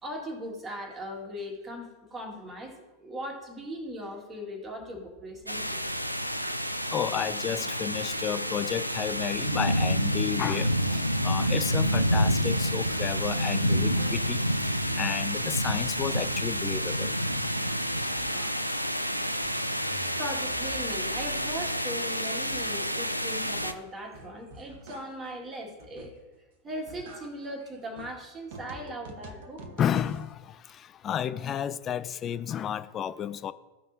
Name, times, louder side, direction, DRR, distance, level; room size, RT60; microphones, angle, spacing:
voice 1, 0.0-5.8 20.2-26.2 26.6-29.7, equal, 20° right, 2.0 m, -39 dB
sound 1, 5.5-23.7, equal, 90° right, 0.5 m, -28 dB
voice 2, 6.8-17.1 29.8-33.5, left 9 dB, 30° left, 0.4 m, -32 dB
sound 2, 12.9-13.2 13.6-14.6 14.9-16.7 17.1-17.7 18.0-18.9 19.2-22.0 22.3-25.4 25.8-26.4 26.7-30.3, right 1 dB, 50° right, 1.1 m, -48 dB
15.0 x 5.4 x 2.7 m
figure-of-eight pair, 90°, 0 cm